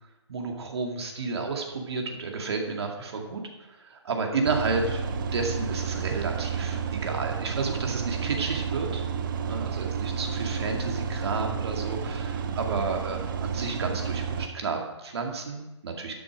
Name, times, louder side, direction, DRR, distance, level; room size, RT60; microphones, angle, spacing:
voice 1, 0.3-5.0 5.3-9.0 9.5-16.2, right 4 dB, 60° right, 2 dB, 2.2 m, -31 dB
sound 1, 4.5-14.5, right 6 dB, 45° right, 0.8 m, -31 dB
11.5 x 6.9 x 5.0 m, 1.0 s
hypercardioid pair, 145°, 15 cm